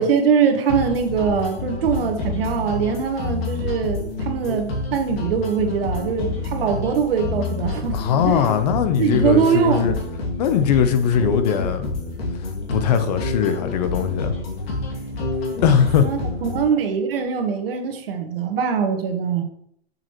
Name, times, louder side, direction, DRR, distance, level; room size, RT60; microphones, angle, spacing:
voice 1, 0.0-8.0 8.2-8.4 9.0-10.0 16.0-19.4, right 6 dB, 60° right, 4 dB, 1.4 m, -22 dB
sound 1, 0.7-16.7, left 2 dB, 65° left, 2.4 m, -28 dB
voice 2, 7.9-9.9 10.4-12.0 12.4-14.3 15.6-16.1, left 8 dB, 40° left, 10 dB, 0.6 m, -20 dB
6.5 x 6.5 x 3.1 m, 0.72 s
hypercardioid pair, 150°, 32 cm